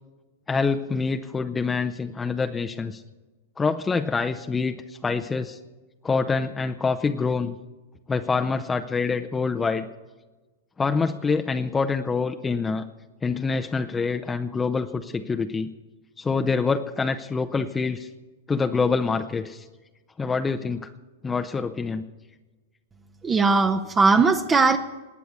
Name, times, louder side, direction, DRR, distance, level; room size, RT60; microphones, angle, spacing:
voice 1, 0.5-3.0 3.6-5.6 6.0-7.6 8.1-9.9 10.8-12.8 13.2-15.7 16.2-18.1 18.5-19.7 20.2-20.9 21.2-22.0, left 4 dB, 15° left, 6 dB, 0.7 m, -26 dB
voice 2, 23.2-24.8, right 4 dB, 20° right, 7 dB, 0.9 m, -19 dB
19.5 x 8.3 x 8.2 m, 1.2 s
hypercardioid pair, 105°, 0 cm